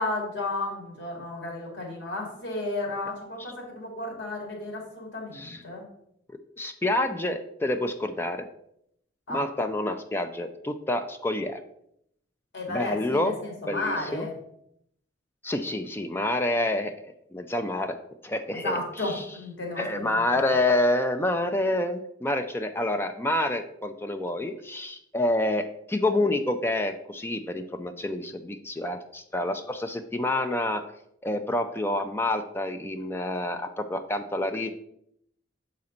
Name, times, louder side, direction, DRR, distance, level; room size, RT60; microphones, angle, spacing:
voice 1, 0.0-5.8 9.3-9.4 12.5-14.3 18.6-20.2, left 2 dB, 85° left, 0 dB, 2.2 m, -33 dB
voice 2, 6.6-8.5 9.3-11.6 12.7-13.4 13.7-14.3 15.4-17.0 17.3-18.0 18.2-19.3 19.8-30.8 31.2-34.7, left 1 dB, 10° left, 7 dB, 0.4 m, -28 dB
7.2 x 4.2 x 3.8 m, 0.73 s
head